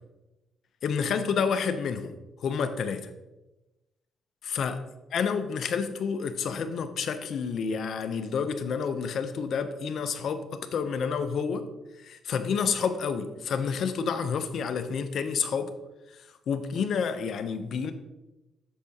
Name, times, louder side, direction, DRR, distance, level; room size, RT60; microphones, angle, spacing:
voice 1, 0.8-2.1 2.4-3.1 4.4-4.8 5.1-11.7 12.0-15.7 16.1-17.9, left 6 dB, 65° left, 9 dB, 0.7 m, -29 dB
8.4 x 6.4 x 2.9 m, 1.0 s
cardioid pair, 90°, 0 cm